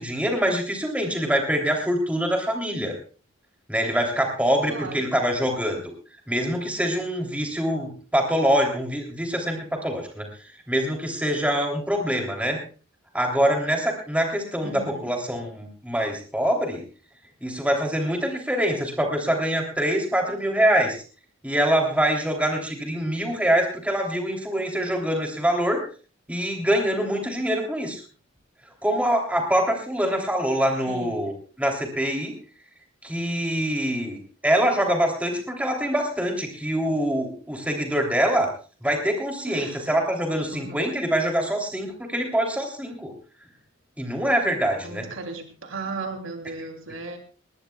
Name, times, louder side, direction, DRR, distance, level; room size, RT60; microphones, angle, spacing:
voice 1, 0.0-3.0 3.7-5.9 6.3-10.2 10.7-12.6 13.1-16.8 17.4-21.0 21.4-25.8 26.3-28.0 28.8-32.3 33.0-38.5 38.8-43.1 44.0-45.0, equal, 5° right, 1 dB, 3.2 m, -24 dB
voice 2, 4.7-5.1 14.6-15.1 30.9-31.3 39.4-39.9 40.5-40.8 44.8-47.2, right 3 dB, 90° right, 4 dB, 3.2 m, -36 dB
20.5 x 19.0 x 2.4 m, 0.37 s
head